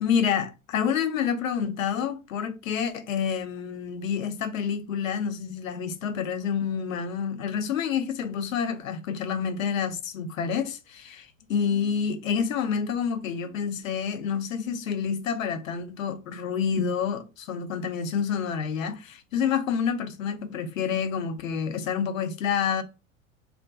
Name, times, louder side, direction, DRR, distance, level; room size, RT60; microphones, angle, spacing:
voice 1, 0.0-22.8, left 7 dB, 75° left, 0.6 m, -28 dB
2.4 x 2.1 x 3.5 m
figure-of-eight pair, 85°, 41 cm